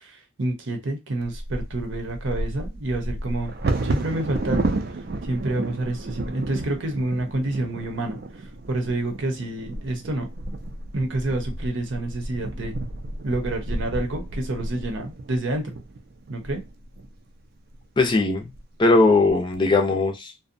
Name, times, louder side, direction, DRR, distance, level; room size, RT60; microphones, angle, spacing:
voice 1, 0.4-3.5 3.8-4.6 5.2-8.2 8.7-10.3 10.9-12.8 13.2-15.8 16.3-16.6, right 2 dB, 75° right, 0.8 m, -28 dB
Bird vocalization bird call bird song / Wind / Thunder, 1.2-17.1 17.7-17.8 18.2-18.6 19.0-19.5, right 2 dB, 50° right, 0.4 m, -32 dB
voice 2, 18.0-18.4 18.8-20.3, left 3 dB, 25° left, 0.4 m, -19 dB
2.6 x 2.1 x 2.5 m
head